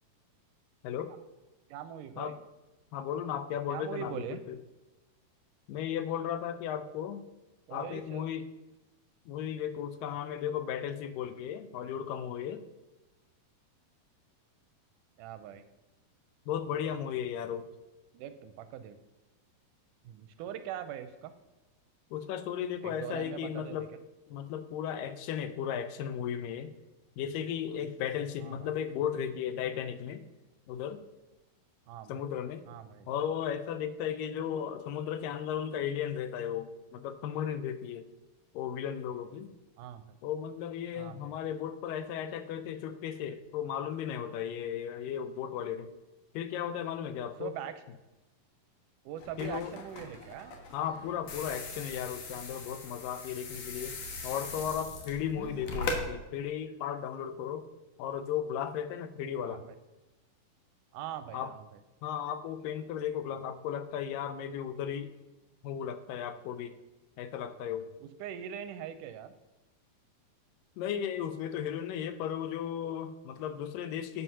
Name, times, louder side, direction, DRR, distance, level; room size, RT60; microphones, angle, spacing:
voice 1, 0.8-1.1 2.2-2.4 2.9-4.6 5.7-7.2 7.7-8.4 9.3-12.6 16.5-17.7 22.1-23.9 24.3-26.7 27.2-30.3 30.7-31.0 32.1-32.6 33.1-38.1 38.5-39.5 40.2-45.9 46.3-47.5 49.4-49.7 50.7-54.0 54.2-57.7 58.0-59.6 61.3-61.5 62.0-65.1 65.6-66.8 67.2-67.9 70.8-74.2, left 9 dB, 80° left, 12 dB, 2.2 m, -35 dB
voice 2, 1.7-2.3 3.7-4.4 7.7-8.2 15.2-15.6 18.1-19.0 20.0-21.3 22.8-23.8 28.4-28.7 31.9-32.2 32.7-33.1 39.8-40.2 40.9-41.4 47.4-47.7 49.1-50.5 59.4-59.7 60.9-61.7 68.0-69.3, right 10 dB, 80° right, 10 dB, 1.9 m, -42 dB
sound 1, 49.2-56.0, left 3 dB, 60° left, 2.1 m, -40 dB
9.4 x 5.8 x 5.5 m, 1.0 s
omnidirectional pair, 4.0 m